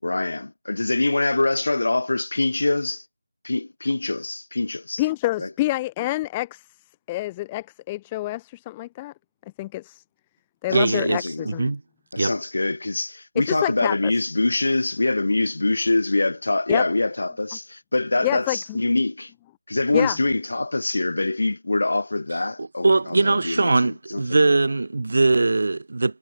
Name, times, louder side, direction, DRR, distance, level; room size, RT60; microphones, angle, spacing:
voice 1, 0.0-3.0 3.4-5.0 5.4-5.5 10.7-11.6 12.1-19.3 19.7-24.5, left 2 dB, 65° left, 7.4 m, -24 dB
voice 2, 5.0-6.7 7.1-9.1 9.6-10.0 10.6-11.7 13.4-14.1 16.7-16.8 18.2-18.8 19.9-20.2, left 17 dB, 10° left, 2.1 m, -27 dB
voice 3, 10.7-11.8 12.2-12.3 22.6-26.2, right 3 dB, 50° right, 7.0 m, -21 dB
figure-of-eight pair, 175°, 0 cm